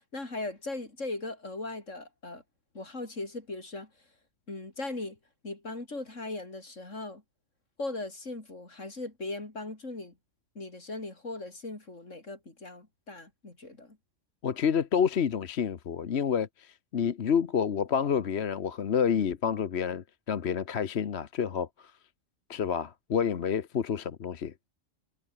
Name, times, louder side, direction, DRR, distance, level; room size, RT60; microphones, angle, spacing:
voice 1, 0.0-2.4 2.7-3.9 4.5-5.2 5.4-7.2 7.8-10.1 10.5-14.0, left 2 dB, 85° left, 5.0 m, -38 dB
voice 2, 14.4-21.9 22.5-24.7, left 7 dB, 60° left, 1.2 m, -29 dB
omnidirectional pair, 1.3 m